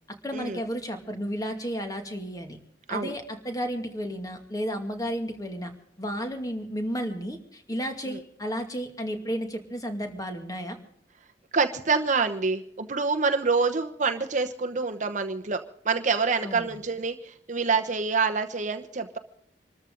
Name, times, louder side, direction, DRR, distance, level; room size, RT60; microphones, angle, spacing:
voice 1, 0.2-2.6 2.9-5.7 6.0-10.8 16.4-16.8, equal, 20° left, 5 dB, 2.4 m, -32 dB
voice 2, 11.5-19.2, right 4 dB, 45° right, 6 dB, 1.0 m, -26 dB
26.5 x 13.5 x 3.9 m, 0.67 s
head